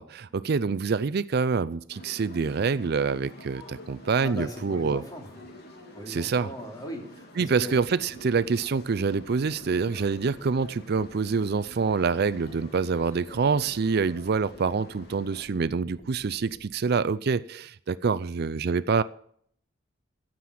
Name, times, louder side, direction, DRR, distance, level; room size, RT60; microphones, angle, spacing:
voice 1, 0.0-5.0 6.1-6.5 7.4-19.0, right 5 dB, 55° right, 16 dB, 0.4 m, -26 dB
sound 1, 1.9-15.4, left 1 dB, 55° left, 2.7 m, -48 dB
voice 2, 4.2-5.6 5.9-7.8, equal, 20° left, 0 dB, 3.5 m, -39 dB
sound 2, 7.4-16.6, left 1 dB, 75° left, 4.7 m, -51 dB
15.5 x 7.6 x 8.4 m, 0.64 s
head